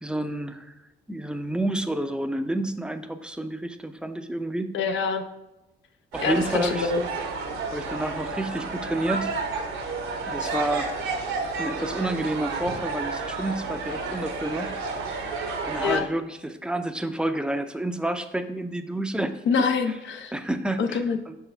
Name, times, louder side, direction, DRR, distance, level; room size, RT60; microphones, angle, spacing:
voice 1, 0.0-0.7 1.1-4.7 6.1-6.9 7.7-9.3 10.3-10.9 11.6-14.7 15.6-19.3 19.9-20.0 20.3-21.4, right 1 dB, 5° right, 8 dB, 0.4 m, -29 dB
voice 2, 4.7-5.2 6.2-7.0 10.4-10.5 15.8-16.0 19.5-20.3 20.8-21.2, left 5 dB, 70° left, 6 dB, 0.6 m, -25 dB
sound 1, 6.1-16.0, right 4 dB, 80° right, 1.0 m, -31 dB
6.3 x 4.7 x 3.3 m, 0.97 s
cardioid pair, 90°, 20 cm